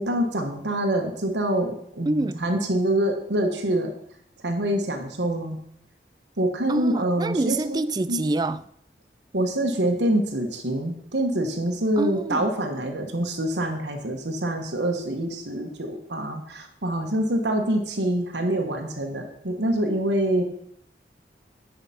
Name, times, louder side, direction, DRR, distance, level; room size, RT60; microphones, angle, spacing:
voice 1, 0.0-3.9 4.4-5.6 6.4-7.8 8.1-8.2 9.3-20.4, right 1 dB, 85° right, 1.2 m, -25 dB
voice 2, 2.1-2.4 6.7-8.6 12.0-12.5, right 2 dB, 25° right, 0.3 m, -26 dB
9.3 x 5.0 x 5.7 m
head